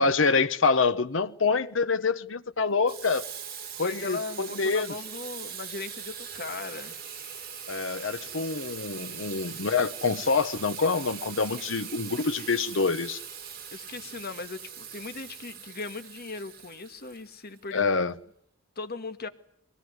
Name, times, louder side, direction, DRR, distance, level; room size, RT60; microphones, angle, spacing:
voice 1, 0.0-3.2 3.8-4.9 7.7-13.2 17.7-18.1, left 4 dB, 70° left, 1.0 m, -26 dB
Water tap faucet / Sink (filling or washing), 2.9-17.6, right 7 dB, 50° right, 4.9 m, -41 dB
voice 2, 3.8-7.0 13.7-17.8 18.8-19.3, left 3 dB, 50° left, 1.8 m, -38 dB
23.5 x 18.0 x 9.6 m
head